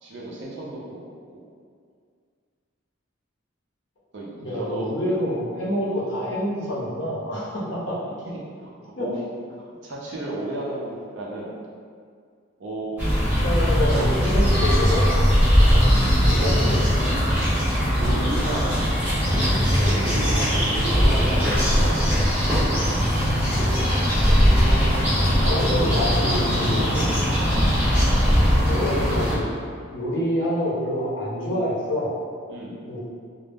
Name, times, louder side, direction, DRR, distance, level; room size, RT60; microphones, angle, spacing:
voice 1, 0.0-1.4 4.1-4.9 5.3-5.4 5.8-6.0 8.3-8.7 9.0-9.2 9.6-11.6 12.6-13.1 13.9-14.2 15.6-16.0 16.4-16.5 17.3-17.7 17.9-18.7 19.8-22.0 24.6-25.9 26.2-26.3 27.5-27.9 32.5-32.8, right 2 dB, 60° right, -5 dB, 0.5 m, -34 dB
voice 2, 4.4-8.0 8.9-9.1 13.4-15.3 15.7-15.8 16.3-16.8 25.5-27.1 28.6-29.5 29.9-32.1 32.9-33.0, left 1 dB, 70° left, -7 dB, 0.7 m, -27 dB
sound 1, 13.0-29.4, equal, 10° right, 0.7 m, -20 dB
2.1 x 2.0 x 3.3 m, 2.1 s
head